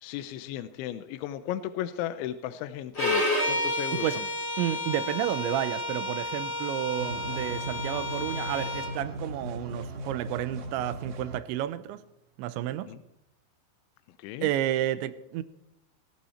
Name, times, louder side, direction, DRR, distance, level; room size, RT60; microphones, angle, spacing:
voice 1, 0.0-4.3 12.9-13.0 14.2-14.5, left 12 dB, 85° left, 3.1 m, -35 dB
Bowed string instrument, 2.9-8.9, left 2 dB, 15° left, 3.9 m, -31 dB
voice 2, 4.6-12.0 12.4-12.9 14.4-15.4, right 13 dB, 80° right, 3.0 m, -31 dB
sound 1, 7.0-11.4, right 1 dB, 55° right, 2.3 m, -38 dB
18.0 x 16.0 x 4.3 m
omnidirectional pair, 5.3 m